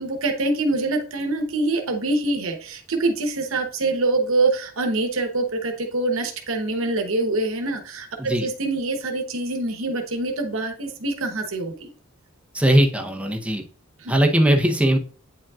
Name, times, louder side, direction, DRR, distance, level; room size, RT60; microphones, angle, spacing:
voice 1, 0.0-11.9 14.0-14.2, right 2 dB, 70° right, 4 dB, 0.9 m, -25 dB
voice 2, 12.5-13.6 14.1-15.0, right 1 dB, 5° right, 2 dB, 0.7 m, -19 dB
8.5 x 5.1 x 2.4 m, 0.42 s
head